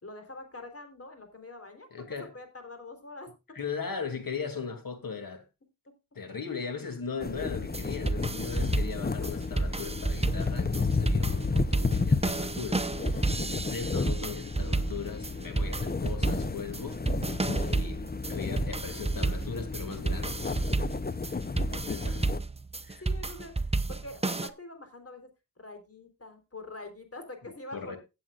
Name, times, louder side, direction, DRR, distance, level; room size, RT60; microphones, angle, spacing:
voice 1, 0.0-2.1 2.3-3.3 13.1-13.5 23.0-25.3 25.6-28.0, left 2 dB, 45° left, 3.8 m, -45 dB
voice 2, 1.9-2.3 3.5-5.4 6.1-17.3 17.7-18.0 18.3-20.4 21.5-22.2 22.8-23.0 27.7-28.0, left 5 dB, 80° left, 2.8 m, -38 dB
sound 1, 7.2-22.4, left 4 dB, 30° left, 0.7 m, -32 dB
sound 2, 7.6-24.5, right 3 dB, 20° right, 0.8 m, -31 dB
17.0 x 7.8 x 2.4 m
wide cardioid pair, 80°, 34 cm